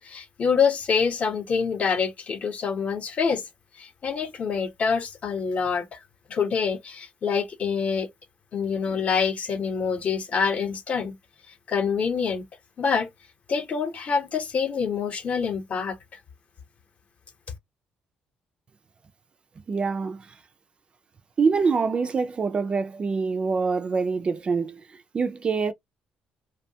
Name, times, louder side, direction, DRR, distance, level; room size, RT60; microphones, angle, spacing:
voice 1, 0.0-3.4 3.8-6.0 6.3-8.1 8.5-11.1 11.7-12.4 12.8-13.1 13.5-16.0, left 6 dB, 45° left, 0.7 m, -26 dB
voice 2, 19.7-20.3 21.4-24.8 25.1-25.7, right 5 dB, 30° right, 0.3 m, -25 dB
2.6 x 2.2 x 2.7 m
cardioid pair, 115°, 3 cm